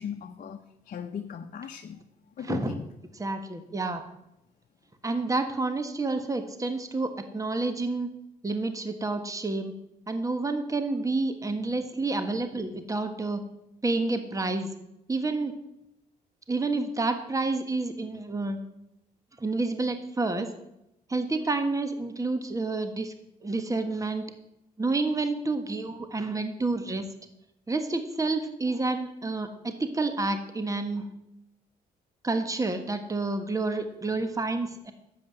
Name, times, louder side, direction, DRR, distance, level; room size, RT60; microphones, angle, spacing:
voice 1, 0.0-2.0 2.4-2.8, left 8 dB, 55° left, 4 dB, 0.9 m, -38 dB
voice 2, 2.4-2.8 3.1-4.0 5.0-8.1 8.4-9.7 10.1-13.4 13.8-14.7 15.1-15.5 16.5-18.6 19.4-20.5 21.1-23.1 23.4-24.2 24.8-27.1 27.7-31.1 32.2-34.9, right 3 dB, 20° right, 8 dB, 1.4 m, -29 dB
10.5 x 7.8 x 7.7 m, 0.87 s
cardioid pair, 75°, 17 cm